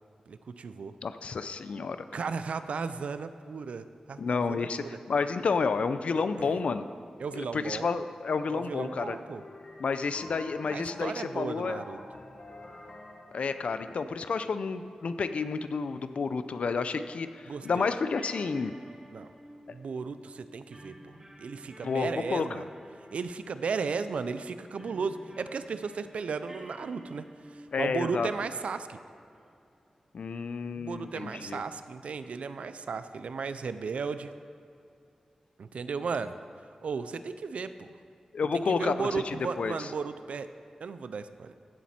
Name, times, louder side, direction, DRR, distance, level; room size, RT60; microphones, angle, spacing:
voice 1, 0.3-0.9 2.1-4.9 6.4-6.5 7.2-7.9 8.5-9.4 10.7-12.0 17.5-17.9 19.1-19.3 19.7-21.1 21.4-22.7 23.1-27.3 27.5-29.0 30.7-34.3 35.6-36.4 36.8-37.9 38.5-40.5 40.8-41.5, right 5 dB, 85° right, 11 dB, 0.4 m, -35 dB
voice 2, 1.0-2.0 4.2-6.8 7.3-9.2 9.8-11.8 13.3-18.7 21.8-22.6 27.7-28.3 30.1-31.6 38.3-39.9, left 4 dB, 75° left, 11 dB, 0.5 m, -30 dB
sound 1, 8.8-14.1, left 2 dB, 50° left, 1.3 m, -48 dB
sound 2, 17.6-28.8 29.2-29.4 31.0-32.9, right 1 dB, 20° right, 1.6 m, -51 dB
15.5 x 7.4 x 4.3 m, 2.5 s
wide cardioid pair, 105°, 2 cm